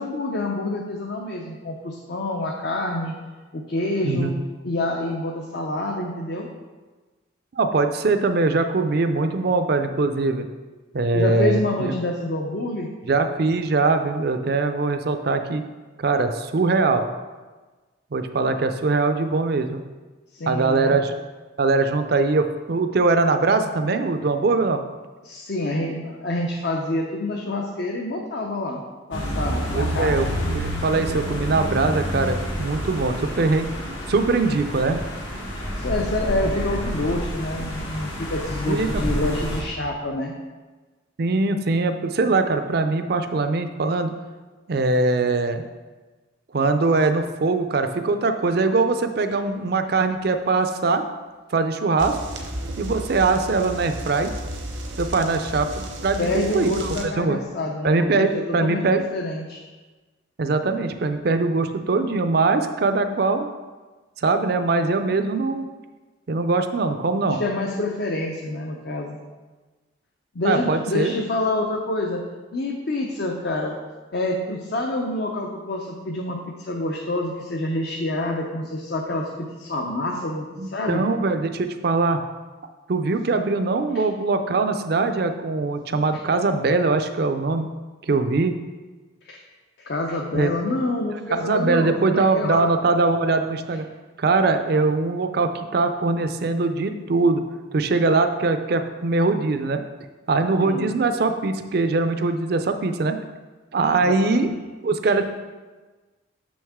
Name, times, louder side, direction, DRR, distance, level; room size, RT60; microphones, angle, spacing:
voice 1, 0.0-3.1 3.5-4.3 4.6-6.5 11.1-12.9 18.4-18.6 20.3-21.0 25.2-28.8 29.1-30.3 35.8-40.3 56.2-59.6 67.3-69.2 70.3-72.2 72.5-73.8 74.1-81.1 83.9-84.0 89.2-89.4 89.8-92.7 100.6-100.9 104.0-104.5, left 2 dB, 55° left, 0 dB, 0.6 m, -27 dB
voice 2, 4.0-4.4 7.6-10.5 10.9-11.9 13.1-15.6 16.0-17.1 18.1-19.8 20.5-21.1 21.6-24.8 29.7-33.7 34.1-35.0 38.7-38.9 41.2-44.1 44.7-45.6 46.5-51.0 51.5-52.2 52.8-54.3 55.0-57.4 57.8-59.0 60.4-63.5 64.2-65.7 66.3-67.4 70.4-71.1 80.6-82.2 82.9-87.7 88.1-88.6 90.3-90.5 91.3-93.9 94.2-97.4 97.7-99.8 100.3-103.2 103.7-104.5 104.8-105.3, right 3 dB, 50° right, 8 dB, 0.4 m, -22 dB
sound 1, 29.1-39.6, equal, 80° left, 1.6 m, -29 dB
sound 2, 52.0-57.1, right 1 dB, 80° right, 0.9 m, -33 dB
6.3 x 6.2 x 3.6 m, 1.3 s
head